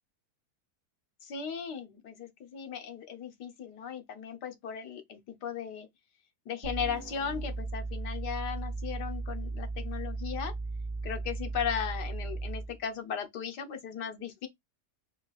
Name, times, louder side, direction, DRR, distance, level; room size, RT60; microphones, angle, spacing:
voice 1, 1.2-5.9 6.5-10.5 11.0-14.5, left 7 dB, 90° left, 1.6 m, -37 dB
sound 1, 6.6-12.8, right 3 dB, 40° right, 1.1 m, -36 dB
4.4 x 2.5 x 3.9 m
omnidirectional pair, 1.7 m